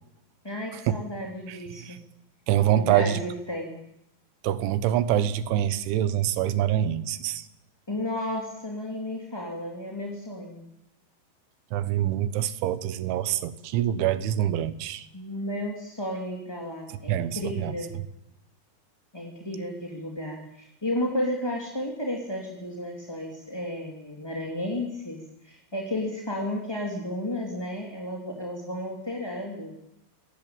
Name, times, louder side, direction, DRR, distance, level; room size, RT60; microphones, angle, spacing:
voice 1, 0.4-2.0 2.7-3.8 7.9-10.7 15.1-17.9 19.1-29.7, left 1 dB, 5° left, -1 dB, 2.2 m, -33 dB
voice 2, 1.5-2.0 2.5-3.2 4.4-7.5 11.7-15.1 17.1-17.8, right 11 dB, 85° right, 13 dB, 3.6 m, -25 dB
25.5 x 19.0 x 8.9 m, 0.84 s
omnidirectional pair, 5.3 m